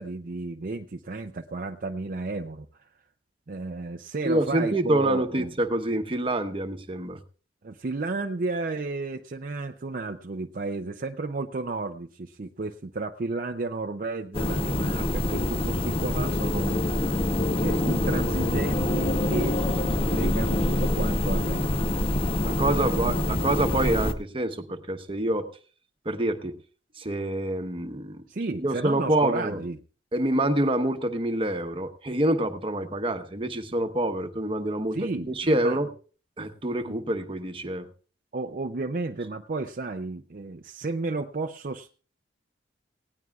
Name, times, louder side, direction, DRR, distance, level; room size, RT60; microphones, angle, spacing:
voice 1, 0.0-2.9 3.5-5.5 7.6-17.1 17.6-19.6 20.0-22.4 22.6-23.2 28.3-29.8 34.9-35.3 35.6-35.8 36.8-37.0 38.3-41.9, right 3 dB, 45° right, 6 dB, 0.5 m, -33 dB
voice 2, 4.2-7.2 22.2-25.5 26.0-26.6 27.0-28.2 28.5-29.6 30.1-35.9 36.4-37.9, right 1 dB, 30° right, 6 dB, 1.1 m, -27 dB
sound 1, 14.3-24.1, left 1 dB, 30° left, 0.8 m, -25 dB
18.5 x 17.0 x 2.4 m, 0.40 s
head